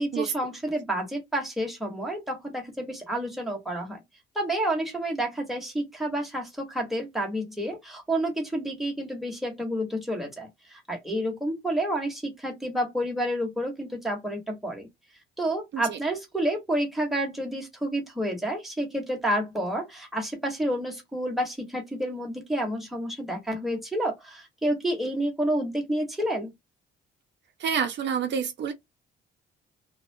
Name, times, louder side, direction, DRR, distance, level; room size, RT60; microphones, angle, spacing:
voice 1, 0.0-4.0 4.3-14.9 15.4-26.5, right 1 dB, ahead, 1.3 m, -29 dB
voice 2, 27.6-28.7, right 7 dB, 65° right, 0.6 m, -28 dB
2.3 x 2.2 x 2.6 m
cardioid pair, 90°, 20 cm